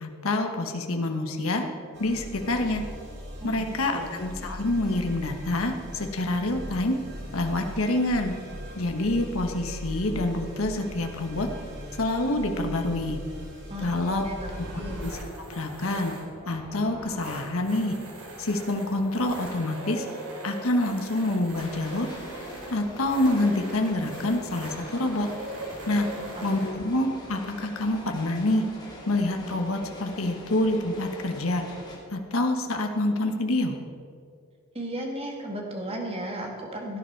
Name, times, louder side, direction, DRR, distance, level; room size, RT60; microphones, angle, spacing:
voice 1, 0.0-1.6 2.0-2.8 3.4-7.0 7.3-8.3 8.8-11.5 12.0-13.2 13.8-14.2 14.6-14.7 15.0-15.2 15.5-16.1 16.4-17.9 18.4-20.0 20.4-22.1 22.7-25.3 25.9-26.1 26.4-28.6 29.1-31.6 32.1-33.8, left 2 dB, 75° left, 4 dB, 1.2 m, -27 dB
sound 1, 1.9-15.1, equal, 55° right, 2.6 m, -40 dB
voice 2, 14.2-15.0 26.1-26.5 34.7-37.0, right 1 dB, 25° right, 1 dB, 2.0 m, -35 dB
sound 2, 14.4-26.7, right 1 dB, 80° right, 3.3 m, -40 dB
sound 3, 21.5-32.0, left 1 dB, 20° left, 2.8 m, -44 dB
17.0 x 10.5 x 4.6 m, 2.4 s
head